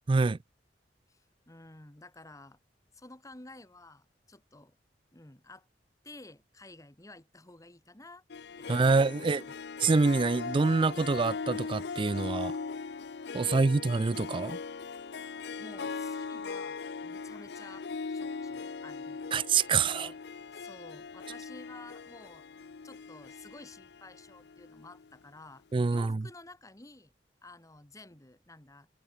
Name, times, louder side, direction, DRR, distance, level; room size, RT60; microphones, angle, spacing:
voice 1, 0.1-0.4 8.7-9.5 9.8-12.5 13.3-14.6 19.3-20.1 25.7-26.2, right 4 dB, 30° right, 0.4 m, -26 dB
voice 2, 1.1-2.6 2.9-4.8 5.1-5.7 6.0-8.2 8.6-9.5 13.4-13.9 15.6-19.3 19.7-20.2 20.5-22.4 22.8-25.6 25.9-27.1 27.4-28.9, left 2 dB, 20° left, 1.8 m, -52 dB
Harp, 8.3-25.1, left 4 dB, 65° left, 0.6 m, -40 dB
head